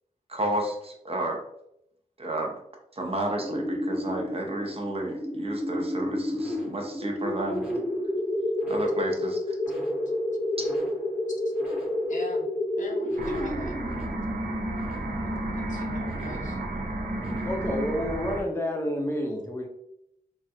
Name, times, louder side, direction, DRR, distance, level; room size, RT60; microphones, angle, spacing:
voice 1, 0.3-1.4 2.2-2.6 2.9-7.7 8.7-9.4 10.6-10.7, right 1 dB, 40° right, 1 dB, 0.6 m, -31 dB
sound 1, 3.4-18.3, left 1 dB, 5° right, 0.9 m, -30 dB
voice 2, 12.1-12.5 12.7-13.7 15.1-16.6, left 2 dB, 55° left, 0 dB, 0.7 m, -42 dB
sound 2, 13.2-18.4, right 3 dB, 80° right, 0.5 m, -34 dB
voice 3, 17.4-19.7, left 1 dB, 15° left, 1 dB, 0.6 m, -29 dB
3.1 x 2.4 x 2.7 m, 0.77 s
wide cardioid pair, 105°, 15 cm